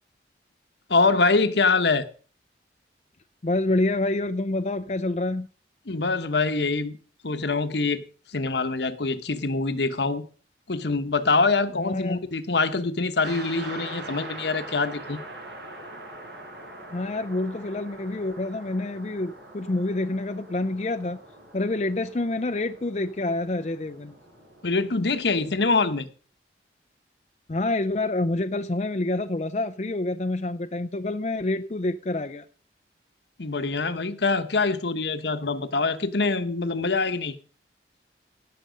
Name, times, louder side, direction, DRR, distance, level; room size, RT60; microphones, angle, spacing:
voice 1, 0.9-2.1 5.9-7.0 7.2-8.0 8.3-10.2 10.7-15.2 24.6-26.1 33.4-37.4, left 3 dB, 70° left, 9 dB, 1.1 m, -24 dB
voice 2, 3.4-5.5 11.8-12.2 16.9-21.2 21.5-24.1 27.5-32.5, left 2 dB, 35° left, 8 dB, 0.5 m, -27 dB
sound 1, 13.2-25.7, right 1 dB, 70° right, 5.1 m, -43 dB
17.5 x 6.8 x 5.1 m, 0.39 s
head